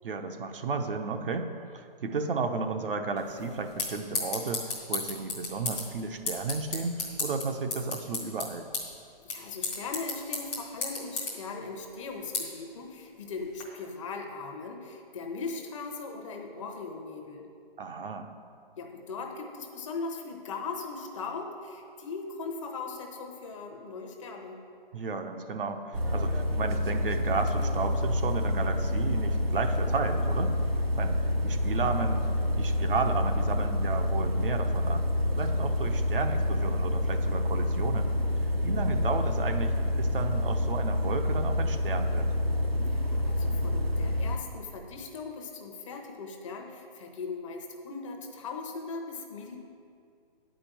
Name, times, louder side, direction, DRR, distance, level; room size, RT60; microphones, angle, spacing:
voice 1, 0.0-8.7 17.8-18.3 24.9-30.5 31.0-32.2 32.6-35.1 35.3-38.1 38.6-42.3, right 4 dB, 65° right, 5 dB, 0.9 m, -33 dB
sound 1, 3.2-13.6, left 3 dB, 5° left, 0.6 m, -36 dB
voice 2, 9.2-17.5 18.8-24.6 42.8-49.6, left 4 dB, 35° left, 3 dB, 0.8 m, -39 dB
sound 2, 25.9-44.4, left 1 dB, 90° right, 1.1 m, -28 dB
8.2 x 5.2 x 7.4 m, 2.4 s
hypercardioid pair, 155°, 29 cm